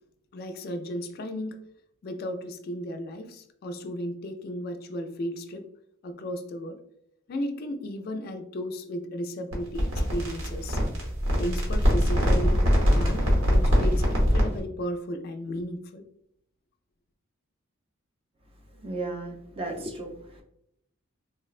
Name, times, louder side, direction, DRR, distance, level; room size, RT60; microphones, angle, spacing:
voice 1, 0.3-1.6 2.0-5.6 6.0-6.8 7.3-10.8 11.4-12.6 12.9-16.0, equal, 45° left, 7 dB, 0.3 m, -34 dB
sound 1, 9.5-14.6, equal, 85° right, 1.0 m, -23 dB
voice 2, 18.8-20.4, right 2 dB, 25° right, 3 dB, 0.4 m, -35 dB
3.8 x 2.1 x 2.4 m, 0.76 s
head